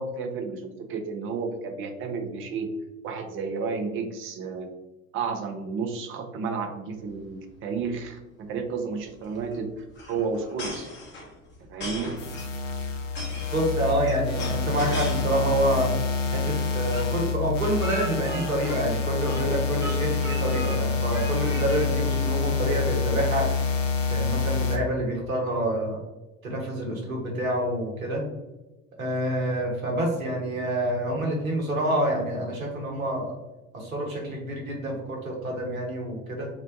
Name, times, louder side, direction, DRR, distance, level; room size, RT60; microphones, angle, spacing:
voice 1, 0.0-2.7 3.0-4.7 5.1-10.9 11.6-12.1, right 5 dB, 30° right, 5 dB, 0.5 m, -32 dB
sound 1, 7.0-7.2 7.5-7.6 7.8-8.1 9.0-15.6 16.0-16.5, left 2 dB, 25° left, 0.9 m, -38 dB
sound 2, 12.2-24.8, left 4 dB, 65° left, 0.6 m, -27 dB
voice 2, 13.5-15.9 16.3-23.5 24.1-26.0 26.4-28.2 29.0-33.3 33.7-36.5, right 1 dB, 80° right, -1 dB, 1.0 m, -27 dB
Speech, 16.9-19.5 19.8-20.8 21.1-21.9, equal, 10° right, 0.9 m, -38 dB
3.8 x 2.2 x 2.5 m, 1.1 s
figure-of-eight pair, 70°, 41 cm